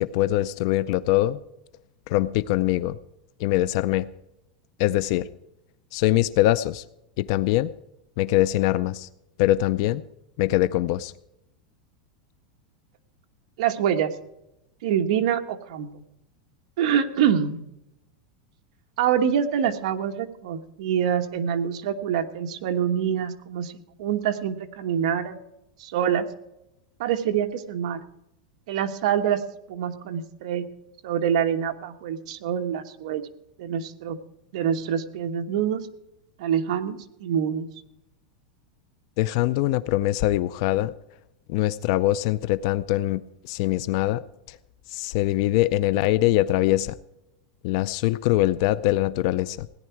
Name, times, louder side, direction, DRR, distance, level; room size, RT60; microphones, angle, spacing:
voice 1, 0.0-1.4 2.1-3.0 3.4-4.1 4.8-5.3 5.9-6.8 7.2-7.7 8.2-9.1 9.4-10.0 10.4-11.1 39.2-40.9 41.5-44.2 44.5-44.6 44.9-46.9 47.6-49.7, left 15 dB, 45° left, 16 dB, 0.4 m, -23 dB
voice 2, 13.6-14.1 14.8-15.9 16.8-17.6 19.0-23.7 24.0-25.4 25.8-26.2 27.0-28.0 28.7-29.4 29.7-30.7 31.0-33.2 33.6-34.2 34.5-35.9 36.4-37.7, right 8 dB, 60° right, 5 dB, 1.3 m, -25 dB
17.5 x 10.5 x 4.6 m, 0.87 s
supercardioid pair, 170°, 4 cm